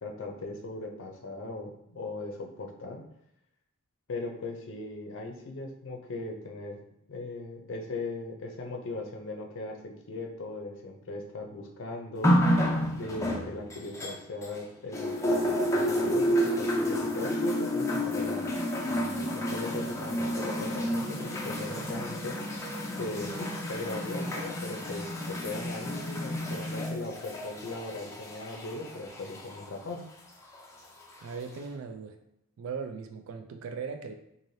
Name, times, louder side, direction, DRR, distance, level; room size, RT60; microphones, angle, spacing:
voice 1, 0.0-3.0 4.1-6.8 7.1-12.4 12.9-22.5 23.0-30.0, left 2 dB, 65° left, 2 dB, 0.5 m, -39 dB
sound 1, 12.2-14.6 14.9-29.6 30.5-30.6, equal, 15° left, 0.4 m, -30 dB
voice 2, 31.2-32.2 32.6-34.1, right 5 dB, 70° right, 6 dB, 0.3 m, -38 dB
3.2 x 2.5 x 2.6 m, 0.79 s
head